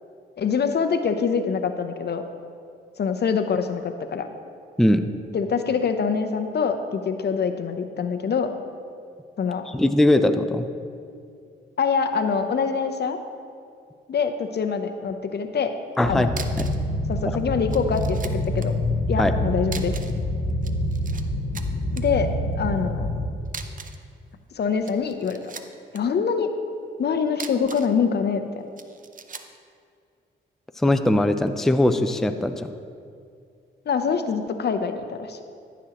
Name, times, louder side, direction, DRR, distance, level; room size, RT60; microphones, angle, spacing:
voice 1, 0.4-2.2 3.0-4.3 5.3-8.5 9.4-9.6 11.8-13.2 14.1-15.7 16.0-16.3 17.1-18.7 19.1-20.0 22.0-22.3 22.6-23.1 24.5-25.4 25.9-26.5 27.0-28.7 33.9-35.4, left 6 dB, 55° left, 7 dB, 0.7 m, -24 dB
voice 2, 9.7-10.7 16.0-16.3 16.6-16.7 19.2-19.3 30.8-32.5, left 1 dB, ahead, 8 dB, 0.5 m, -20 dB
sound 1, 15.9-16.0 16.3-16.9 17.1-17.2 17.7-18.7 19.6-20.2 20.5-21.2 21.5-22.0 23.5-24.1 24.7-26.0 27.3-28.0 28.8-29.6, right 5 dB, 40° right, 0.7 m, -39 dB
sound 2, 16.0-23.3, left 1 dB, 70° left, 0.9 m, -26 dB
14.0 x 6.1 x 2.9 m, 2.3 s
supercardioid pair, 55°, 21 cm